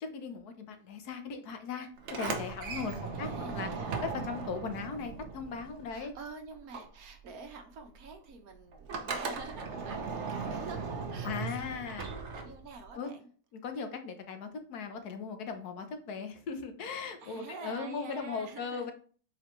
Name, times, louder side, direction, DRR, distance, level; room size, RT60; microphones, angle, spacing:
voice 1, 0.0-3.7 4.0-6.1 11.2-12.1 12.9-13.1 13.5-18.9, left 5 dB, 85° left, 7 dB, 1.5 m, -38 dB
Sliding door, 2.0-6.2 6.5-12.9, right 4 dB, 55° right, 1.1 m, -38 dB
voice 2, 3.1-4.0 5.9-13.3 17.2-18.9, right 4 dB, 70° right, 6 dB, 1.5 m, -47 dB
7.6 x 4.9 x 3.2 m, 0.43 s
omnidirectional pair, 1.6 m